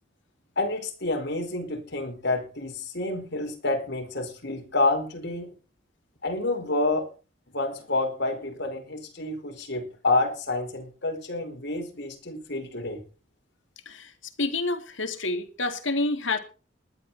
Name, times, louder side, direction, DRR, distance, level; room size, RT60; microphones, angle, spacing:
voice 1, 0.6-5.5 6.2-7.1 7.5-13.0, left 2 dB, 60° left, 2 dB, 4.8 m, -28 dB
voice 2, 14.4-16.4, left 2 dB, 80° left, 7 dB, 2.5 m, -28 dB
20.0 x 11.5 x 4.2 m, 0.36 s
head